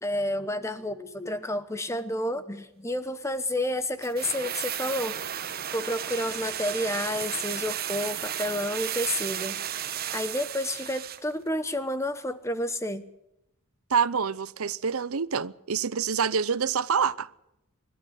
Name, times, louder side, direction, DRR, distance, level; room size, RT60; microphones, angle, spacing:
voice 1, 0.0-5.2 5.7-9.6 10.1-13.0, left 1 dB, 15° left, 1.0 m, -30 dB
sound 1, 4.0-11.3 11.6-11.7, right 10 dB, 45° right, 1.0 m, -34 dB
voice 2, 13.9-17.3, right 6 dB, 75° right, 0.7 m, -26 dB
25.0 x 12.5 x 10.0 m
head